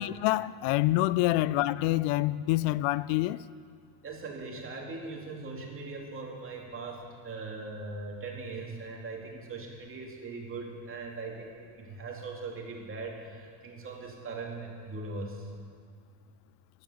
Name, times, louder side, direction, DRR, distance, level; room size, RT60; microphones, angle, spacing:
voice 1, 0.0-3.4, left 17 dB, 85° left, 0.5 m, -26 dB
voice 2, 4.0-15.5, right 3 dB, 30° right, 2.7 m, -40 dB
14.0 x 11.0 x 6.9 m
cardioid pair, 135°, 43 cm